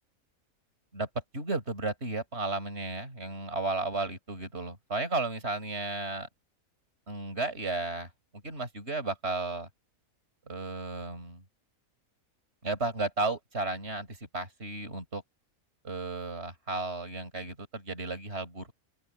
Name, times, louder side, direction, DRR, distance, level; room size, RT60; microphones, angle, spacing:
voice 1, 1.3-6.3 7.1-8.1 8.4-9.7 10.5-11.4 12.6-15.2 15.8-18.7, right 3 dB, 45° right, 5.7 m, -34 dB
open air
omnidirectional pair, 1.5 m